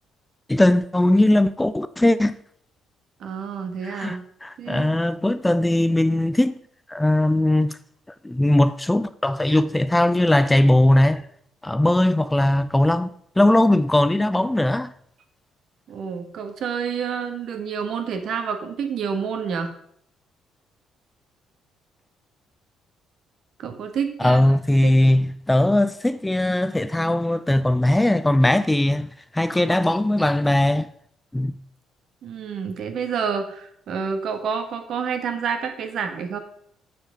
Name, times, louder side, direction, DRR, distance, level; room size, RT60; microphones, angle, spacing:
voice 1, 0.5-2.3 3.8-6.5 6.9-7.8 8.2-11.3 11.6-13.1 13.4-14.9 24.2-30.9 31.3-31.5, left 1 dB, 10° left, 0.4 m, -19 dB
voice 2, 3.2-4.2 4.6-5.0 15.9-19.7 23.6-24.4 24.8-24.9 32.2-36.4, right 6 dB, 60° right, 1.6 m, -28 dB
7.8 x 7.1 x 5.1 m
cardioid pair, 110°, 0 cm